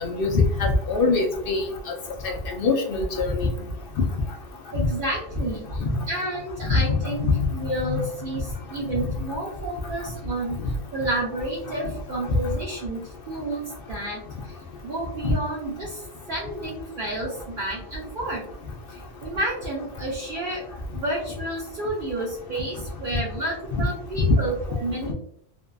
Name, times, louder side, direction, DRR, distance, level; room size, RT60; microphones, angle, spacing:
voice 1, 0.0-1.6 2.2-3.5 6.7-6.8 7.3-7.4 15.2-15.3 23.7-23.8 24.3-24.4, left 3 dB, 65° left, 1 dB, 0.7 m, -22 dB
voice 2, 4.7-10.6 10.9-14.6 14.8-18.4 18.9-20.6 20.9-25.1, right 1 dB, 60° right, -4 dB, 0.8 m, -30 dB
2.6 x 2.4 x 2.2 m, 0.70 s
omnidirectional pair, 1.1 m